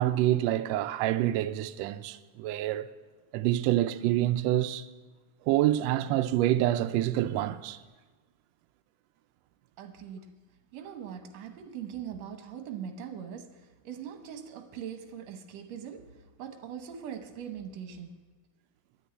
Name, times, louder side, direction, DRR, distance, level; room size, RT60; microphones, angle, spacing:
voice 1, 0.0-2.9 3.3-4.9 5.5-7.8, right 14 dB, 90° right, 1.5 m, -27 dB
voice 2, 9.8-10.3 10.7-18.1, right 8 dB, 65° right, 2.1 m, -41 dB
11.0 x 9.9 x 8.9 m
omnidirectional pair, 3.6 m